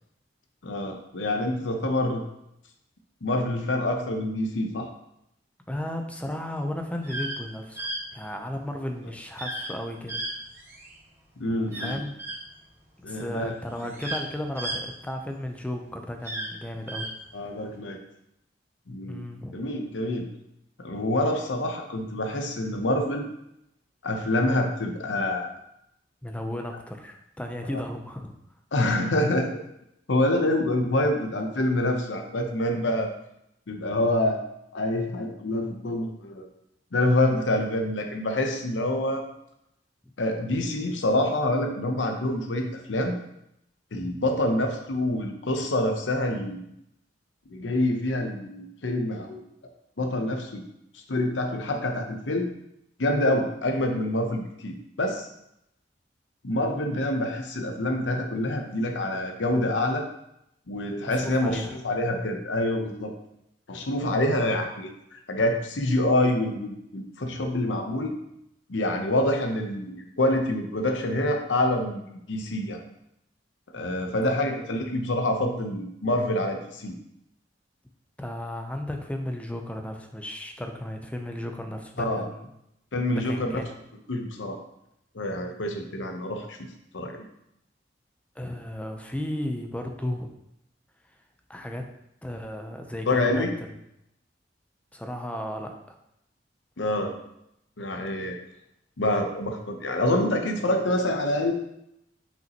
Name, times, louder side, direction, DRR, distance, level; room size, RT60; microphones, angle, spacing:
voice 1, 0.6-2.2 3.2-4.9 11.4-12.0 13.0-13.5 17.3-18.0 18.9-19.2 19.5-20.3 20.8-23.3 24.0-25.5 28.7-29.5 30.1-33.1 33.7-34.4 34.7-36.4 36.9-39.2 40.2-43.2 43.9-46.6 47.5-49.4 50.0-50.6 50.9-52.5 53.0-55.3 56.4-60.0 60.7-63.1 63.7-68.2 68.7-72.8 73.7-76.9 82.0-82.3 82.9-83.6 84.1-84.6 85.1-86.6 86.9-87.3 93.1-93.5 96.8-97.1 97.8-98.4 99.0-101.5, left 1 dB, 80° left, 4 dB, 0.8 m, -26 dB
voice 2, 5.7-10.2 11.8-12.1 13.1-17.1 19.1-19.6 26.2-28.3 61.0-61.8 74.1-74.4 78.2-82.5 83.1-83.7 88.4-90.3 91.5-91.9 92.2-93.7 94.9-95.7, left 1 dB, 10° left, 4 dB, 0.6 m, -34 dB
sound 1, 6.9-7.4 7.8-8.0 9.4-9.7 10.1-10.9 11.7-12.4 13.3-13.4 13.7-15.5 16.1-17.1, right 1 dB, 15° right, 2.2 m, -34 dB
6.2 x 5.2 x 2.9 m, 0.80 s
head